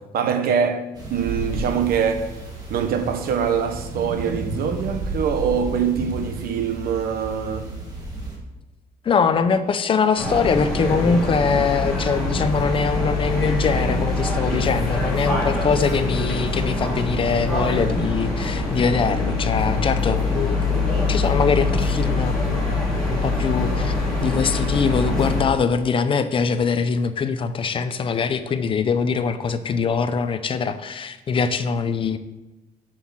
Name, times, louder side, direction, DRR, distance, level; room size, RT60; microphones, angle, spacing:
voice 1, 0.1-2.3 2.7-7.7 14.5-14.7, right 7 dB, 70° right, 1.0 m, -24 dB
sound 1, 0.9-8.4, right 2 dB, 25° right, 2.0 m, -32 dB
voice 2, 9.0-22.7 23.1-32.2, left 5 dB, 35° left, 0.5 m, -23 dB
sound 2, 10.2-25.4, left 2 dB, 5° left, 2.6 m, -23 dB
7.4 x 6.3 x 7.2 m
cardioid pair, 180°, 16 cm